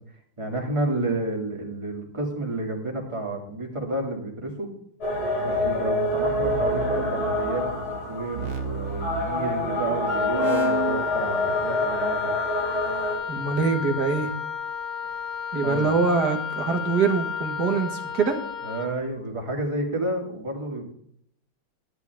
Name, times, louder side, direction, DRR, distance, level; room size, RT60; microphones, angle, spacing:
voice 1, 0.4-4.7 5.4-7.6 8.1-12.3 15.6-15.9 18.6-20.8, right 2 dB, 15° right, -1 dB, 2.4 m, -30 dB
sound 1, 5.0-13.2, left 2 dB, 80° left, 5.2 m, -26 dB
sound 2, 5.6-9.9 10.3-11.0, right 7 dB, 90° right, 2.0 m, -33 dB
Wind instrument woodwind instrument, 10.1-18.9, left 7 dB, 35° left, 0.7 m, -32 dB
voice 2, 13.3-14.3 15.5-18.4, right 4 dB, 55° right, 5 dB, 2.0 m, -24 dB
11.0 x 11.0 x 3.5 m, 0.66 s
omnidirectional pair, 2.2 m